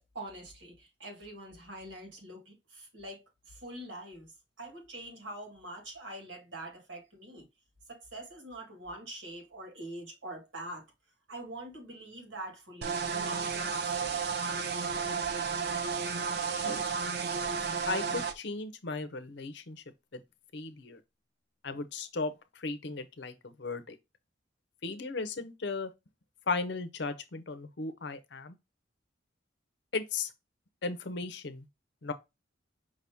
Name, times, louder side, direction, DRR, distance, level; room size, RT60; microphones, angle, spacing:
voice 1, 0.0-4.3 4.6-7.5 7.9-10.8 11.3-14.2, right 1 dB, 70° right, 1.7 m, -44 dB
sound 1, 12.8-18.3, right 5 dB, 55° right, 0.5 m, -32 dB
voice 2, 17.9-19.8 20.1-20.2 20.5-21.0 21.6-24.0 24.8-25.9 26.5-28.6 29.9-30.3 30.8-31.7 32.0-32.1, left 3 dB, 60° left, 0.7 m, -36 dB
5.2 x 2.7 x 3.5 m
head